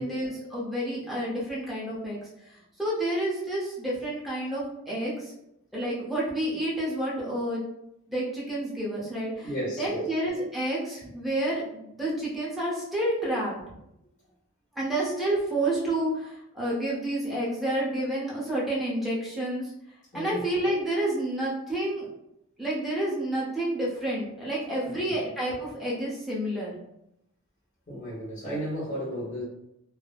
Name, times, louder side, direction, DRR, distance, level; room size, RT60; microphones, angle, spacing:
voice 1, 0.0-5.3 5.7-7.6 8.1-13.6 14.7-22.1 22.6-26.8, right 1 dB, ahead, -6 dB, 0.7 m, -29 dB
voice 2, 9.4-10.0 20.1-20.4 24.9-25.2 27.9-29.4, equal, 35° left, -8 dB, 1.0 m, -34 dB
3.1 x 2.1 x 2.3 m, 0.81 s
head